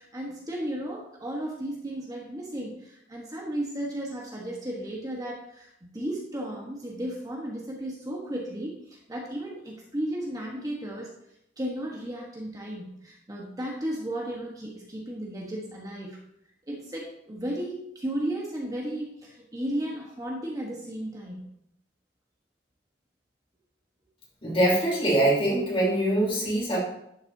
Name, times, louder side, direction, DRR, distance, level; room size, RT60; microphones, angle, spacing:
voice 1, 0.0-11.1 11.6-16.2 16.7-21.4, right 1 dB, 20° right, -2 dB, 1.3 m, -34 dB
voice 2, 24.4-26.8, right 1 dB, 30° left, -4 dB, 3.5 m, -23 dB
11.5 x 7.8 x 2.8 m, 0.78 s
head